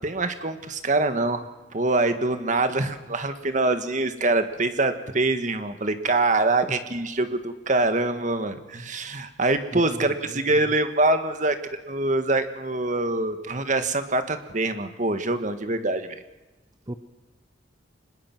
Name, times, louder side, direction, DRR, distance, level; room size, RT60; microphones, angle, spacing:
voice 1, 0.0-1.4 1.7-11.6 11.9-16.2, right 2 dB, 40° right, 9 dB, 1.7 m, -24 dB
voice 2, 9.7-10.4 16.9-17.0, right 1 dB, 20° right, 8 dB, 0.9 m, -36 dB
25.0 x 21.0 x 6.1 m, 1.1 s
head